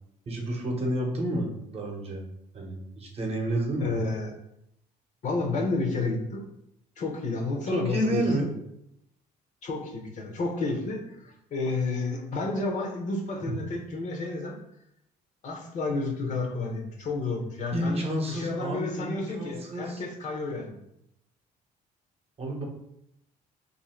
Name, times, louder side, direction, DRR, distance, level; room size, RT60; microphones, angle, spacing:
voice 1, 0.3-2.2 2.5-3.9 7.7-8.5 13.4-13.6 17.7-20.0 22.4-22.6, right 1 dB, 35° right, 1 dB, 0.8 m, -30 dB
voice 2, 3.8-4.3 5.2-6.5 7.0-8.2 9.6-14.6 15.4-18.0 18.3-20.8, left 3 dB, 45° left, 1 dB, 0.8 m, -31 dB
2.7 x 2.6 x 4.2 m, 0.79 s
cardioid pair, 110°, 17 cm